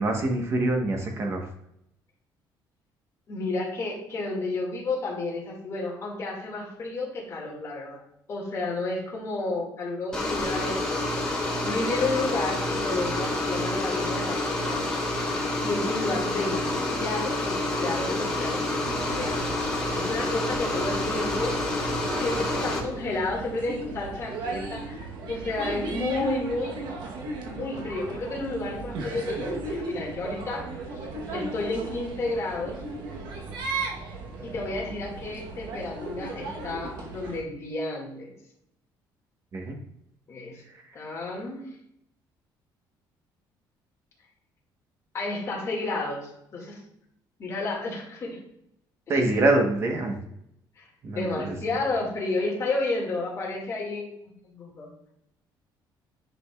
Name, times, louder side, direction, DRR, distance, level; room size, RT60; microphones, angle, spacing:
voice 1, 0.0-1.5 39.5-39.7 49.1-50.1 51.0-51.5, right 2 dB, 35° right, 2 dB, 1.3 m, -25 dB
voice 2, 3.3-8.0 8.3-15.3 15.6-19.4 19.9-25.0 25.3-26.7 27.5-31.0 31.3-32.8 34.4-38.3 40.3-40.6 40.9-41.6 45.1-46.8 47.4-48.4 49.1-49.3 50.8-50.9 51.1-54.9, left 2 dB, 35° left, -3 dB, 2.3 m, -31 dB
sound 1, 10.1-22.8, left 2 dB, 10° left, 1.4 m, -28 dB
sound 2, 18.8-37.4, right 2 dB, 65° right, 1.2 m, -36 dB
9.9 x 5.1 x 2.5 m, 0.76 s
cardioid pair, 160°, 8 cm